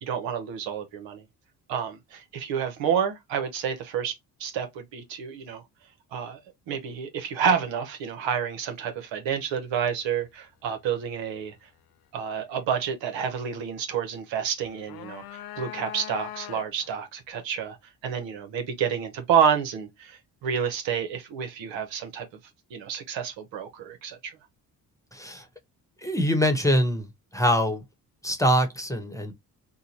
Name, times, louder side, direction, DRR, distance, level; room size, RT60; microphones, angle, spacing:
voice 1, 0.0-1.2 1.7-5.6 6.1-6.4 6.7-11.5 12.1-17.8 18.0-22.3 22.7-24.4, right 7 dB, 70° right, 1.0 m, -29 dB
sound 1, 14.6-17.0, left 13 dB, 55° left, 0.5 m, -40 dB
voice 2, 25.1-25.5 26.0-27.1 27.3-27.8 28.2-29.3, equal, 5° left, 1.1 m, -23 dB
3.8 x 2.3 x 2.9 m
hypercardioid pair, 50°, 46 cm